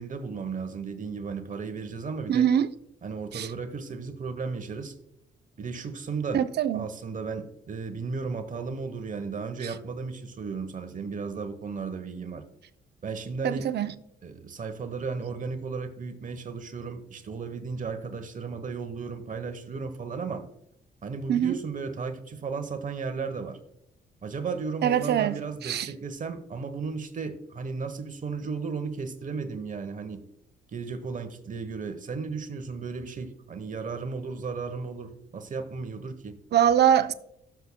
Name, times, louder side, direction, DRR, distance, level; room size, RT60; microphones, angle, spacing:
voice 1, 0.0-2.5 3.0-4.9 5.6-6.4 6.7-12.4 13.0-13.7 14.2-20.4 21.0-23.6 24.2-30.2 30.7-36.4, right 5 dB, 40° right, 1.0 m, -34 dB
voice 2, 2.3-2.7 3.3-3.5 6.3-6.9 13.4-13.9 21.3-21.6 24.8-25.9 36.5-37.1, right 9 dB, 55° right, 0.6 m, -23 dB
16.0 x 7.0 x 2.2 m
cardioid pair, 90°, 20 cm